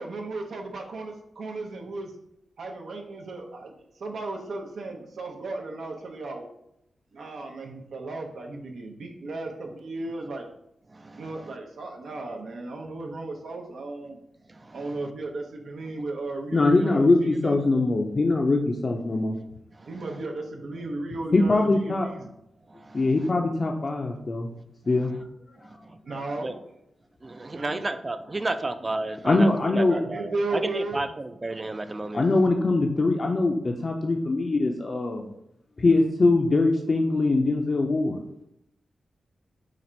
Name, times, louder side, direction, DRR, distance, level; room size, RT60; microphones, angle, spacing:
voice 1, 0.0-2.1 2.6-6.5 7.1-10.5 11.2-14.2 14.7-17.6 19.9-22.3 26.0-26.6 27.5-27.8 29.9-31.0, right 2 dB, 80° right, 1 dB, 0.6 m, -35 dB
voice 2, 10.9-11.5 14.5-15.1 19.7-20.2 22.7-23.3 25.6-26.0 26.4-26.6 27.2-32.3, right 2 dB, 30° right, 11 dB, 0.3 m, -33 dB
voice 3, 16.5-19.4 21.3-22.1 22.9-24.5 24.9-25.1 29.2-30.0 32.1-35.3 35.8-38.2, left 2 dB, 40° left, 1 dB, 0.4 m, -22 dB
4.1 x 2.5 x 4.3 m, 0.79 s
wide cardioid pair, 95°, 0 cm